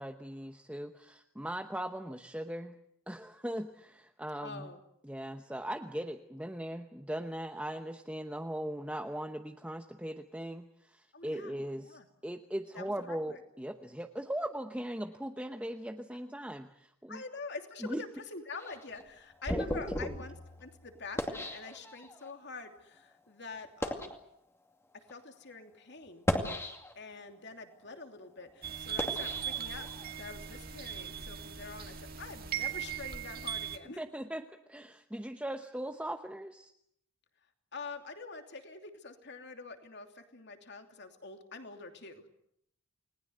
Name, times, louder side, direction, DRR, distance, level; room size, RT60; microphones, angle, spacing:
voice 1, 0.0-2.8 3.1-4.7 5.0-17.2 17.8-18.0 19.5-19.6 20.0-20.1 34.0-36.7, right 1 dB, 5° right, 5 dB, 0.9 m, -39 dB
voice 2, 4.4-4.8 11.1-11.5 11.8-12.1 12.7-13.4 17.1-20.3 20.6-24.2 25.1-26.3 26.9-29.9 30.2-34.0 37.7-42.3, left 3 dB, 50° left, 5 dB, 3.0 m, -46 dB
sound 1, 18.6-22.3 23.0-23.1 23.6-24.2 25.0-25.1 26.1-27.2 27.7-30.2, left 1 dB, 10° left, 2.4 m, -37 dB
sound 2, 28.6-33.8, right 9 dB, 45° right, 2.2 m, -39 dB
30.0 x 20.0 x 8.0 m, 0.74 s
head